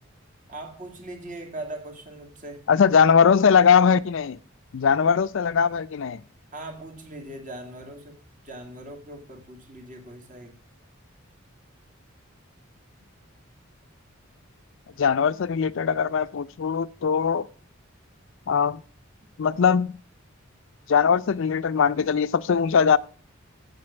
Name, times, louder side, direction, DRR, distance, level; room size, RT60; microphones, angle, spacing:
voice 1, 0.5-2.7 6.5-8.2 8.4-10.5, right 1 dB, 40° right, 2.2 m, -40 dB
voice 2, 2.7-4.4 4.7-6.2 15.0-17.5 18.5-18.8 19.4-19.9 20.9-23.0, left 6 dB, 65° left, 0.4 m, -20 dB
8.1 x 7.6 x 7.0 m
head